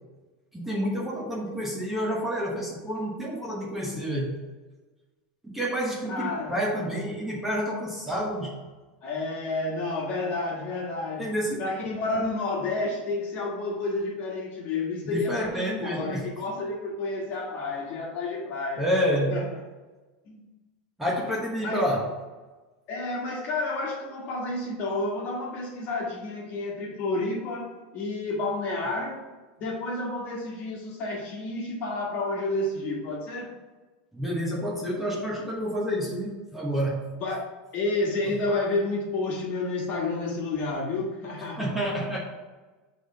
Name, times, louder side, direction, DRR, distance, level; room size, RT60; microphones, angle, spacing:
voice 1, 0.5-4.4 5.4-8.5 11.2-11.7 15.0-16.3 18.8-19.4 21.0-22.1 34.1-37.1 38.2-38.3 41.6-42.2, equal, 5° right, -4 dB, 1.0 m, -29 dB
voice 2, 6.1-6.5 9.0-11.3 11.6-18.9 19.3-19.5 20.2-20.4 21.6-21.9 22.9-29.2 29.6-33.5 37.2-41.7, left 2 dB, 40° left, -1 dB, 1.5 m, -30 dB
6.0 x 3.4 x 5.4 m, 1.3 s
supercardioid pair, 150°, 5 cm